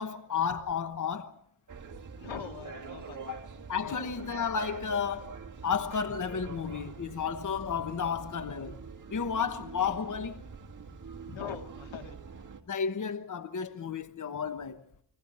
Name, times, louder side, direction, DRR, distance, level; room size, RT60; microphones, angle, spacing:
voice 1, 0.0-1.4 3.3-3.4 3.7-5.3 5.6-8.8 9.1-10.4 11.3-11.4 12.7-14.8, left 6 dB, 45° left, 1.1 m, -32 dB
sound 1, 1.7-12.6, right 5 dB, 45° right, 1.9 m, -45 dB
voice 2, 2.2-3.4 3.8-4.0 11.3-12.2, left 7 dB, 90° left, 2.4 m, -42 dB
29.5 x 22.0 x 4.3 m
wide cardioid pair, 140°, 44 cm